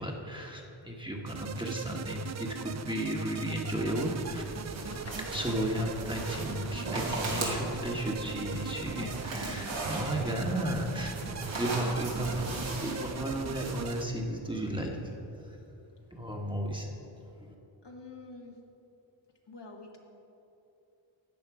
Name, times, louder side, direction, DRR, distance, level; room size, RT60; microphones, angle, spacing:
voice 1, 0.0-4.5 5.3-15.0 16.1-16.9 17.4-17.5, right 1 dB, 10° right, 0 dB, 1.4 m, -34 dB
sound 1, 1.3-14.1, right 7 dB, 40° right, 0.4 m, -40 dB
sound 2, 4.0-13.9, right 2 dB, 80° right, 2.4 m, -38 dB
sound 3, 4.8-11.6, left 3 dB, 35° left, 0.8 m, -49 dB
voice 2, 17.8-18.6 19.5-20.0, left 3 dB, 60° left, 0 dB, 1.8 m, -47 dB
13.0 x 8.8 x 4.9 m, 2.9 s
wide cardioid pair, 75°, 46 cm